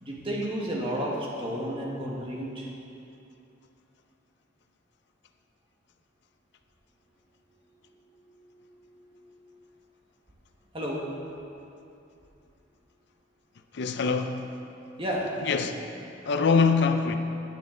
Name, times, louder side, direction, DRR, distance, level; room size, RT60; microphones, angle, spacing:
voice 1, 0.0-2.7 7.8-9.5 10.7-11.0 15.0-15.3, equal, 30° right, 1.6 m, -33 dB
voice 2, 13.7-14.6 15.5-15.7 16.2-17.2, left 5 dB, 60° left, 0.5 m, -24 dB
10.5 x 9.2 x 3.9 m
head